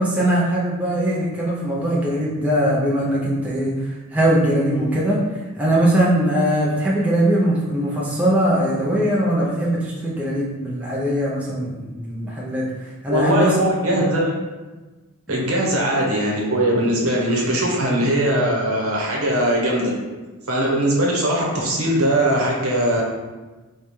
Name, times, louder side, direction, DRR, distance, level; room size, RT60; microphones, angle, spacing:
voice 1, 0.0-5.2 5.6-12.6 13.0-13.6 15.3-15.4, right 1 dB, 5° right, -6 dB, 0.5 m, -21 dB
voice 2, 13.1-14.3 15.3-19.9 20.5-23.0, right 1 dB, 70° right, -3 dB, 0.9 m, -20 dB
3.2 x 2.2 x 4.2 m, 1.2 s
head